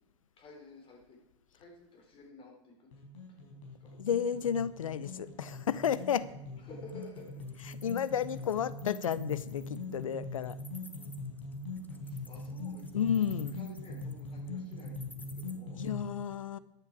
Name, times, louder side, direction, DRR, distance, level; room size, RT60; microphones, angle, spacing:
voice 1, 0.4-1.2 1.5-2.9 3.3-4.0 6.6-7.6 12.0-15.8, left 3 dB, 30° left, 2 dB, 3.9 m, -53 dB
sound 1, 2.9-16.0, left 2 dB, 65° left, 4.6 m, -42 dB
voice 2, 4.0-6.3 7.7-10.6 12.9-13.5 15.8-16.6, left 8 dB, 85° left, 17 dB, 0.6 m, -32 dB
Wild animals, 6.9-15.5, left 3 dB, 10° left, 1.2 m, -55 dB
13.5 x 9.7 x 4.7 m, 0.94 s
hypercardioid pair, 105°, 17 cm